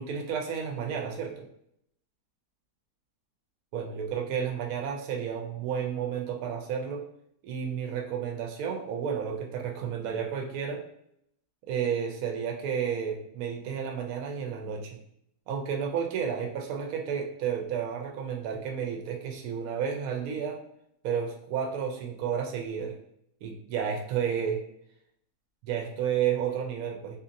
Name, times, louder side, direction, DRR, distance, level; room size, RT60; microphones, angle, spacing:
voice 1, 0.0-1.5 3.7-7.0 7.4-10.8 11.7-15.0 15.5-20.6 21.0-22.9 23.4-24.6 25.6-27.2, right 7 dB, 70° right, 2 dB, 0.9 m, -31 dB
2.7 x 2.7 x 2.5 m, 0.72 s
omnidirectional pair, 1.8 m